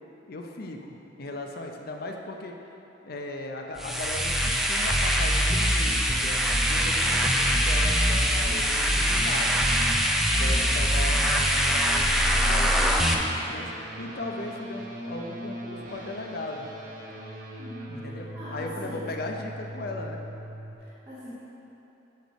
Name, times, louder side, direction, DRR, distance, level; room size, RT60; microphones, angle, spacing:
voice 1, 0.3-2.5 3.0-6.4 6.6-9.5 10.4-13.7 14.0-16.7 17.9-20.2, left 2 dB, 55° left, 2 dB, 0.6 m, -37 dB
sound 1, 3.8-13.1, equal, ahead, 0.4 m, -23 dB
sound 2, 5.8-20.8, right 1 dB, 50° right, 0.8 m, -41 dB
voice 2, 17.6-19.1 20.8-21.3, equal, 20° right, -14 dB, 1.3 m, -43 dB
9.2 x 3.3 x 5.2 m, 3.0 s
head